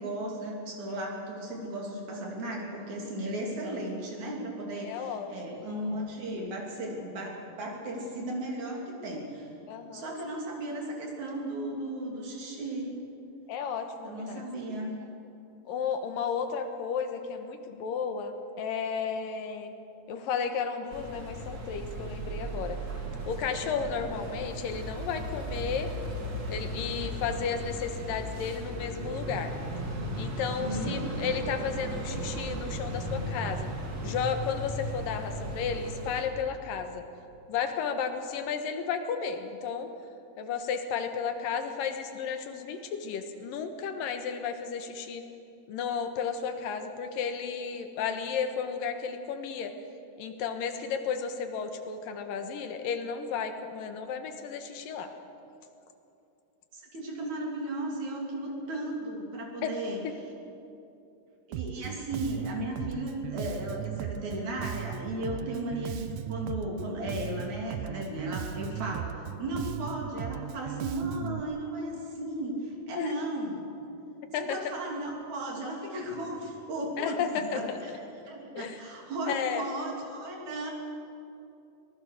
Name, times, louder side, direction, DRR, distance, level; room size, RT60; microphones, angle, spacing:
voice 1, 0.0-9.5 9.9-13.0 14.0-15.1 30.6-31.0 56.7-60.0 61.5-73.7 74.4-77.9 78.2-80.7, right 1 dB, 60° right, -1 dB, 4.4 m, -35 dB
voice 2, 4.8-5.6 9.7-10.1 13.5-14.4 15.7-19.7 20.1-22.8 23.3-25.9 26.5-29.5 30.2-33.7 34.0-37.0 37.5-39.9 40.4-45.2 45.7-49.7 50.2-55.1 58.5-58.6 59.6-59.7 60.0-60.1 73.0-73.1 74.3-74.6 77.0-78.0 78.5-78.8 79.3-79.6, left 6 dB, 85° left, 7 dB, 3.0 m, -33 dB
sound 1, 20.9-36.2, right 1 dB, 35° right, 2.7 m, -36 dB
Bass guitar, 61.5-71.4, right 12 dB, 80° right, 1.7 m, -37 dB
24.0 x 19.0 x 6.6 m, 2.8 s
omnidirectional pair, 3.9 m